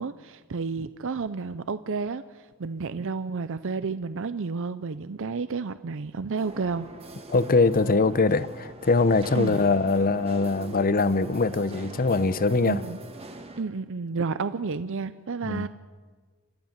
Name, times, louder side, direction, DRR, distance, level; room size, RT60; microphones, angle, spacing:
voice 1, 0.0-6.9 9.3-9.6 12.7-13.0 13.6-15.7, right 4 dB, 60° right, 0.6 m, -31 dB
sound 1, 6.4-13.6, right 2 dB, 30° right, 1.7 m, -43 dB
voice 2, 7.3-12.8 15.4-15.7, left 3 dB, 40° left, 0.8 m, -22 dB
29.5 x 13.0 x 7.4 m
head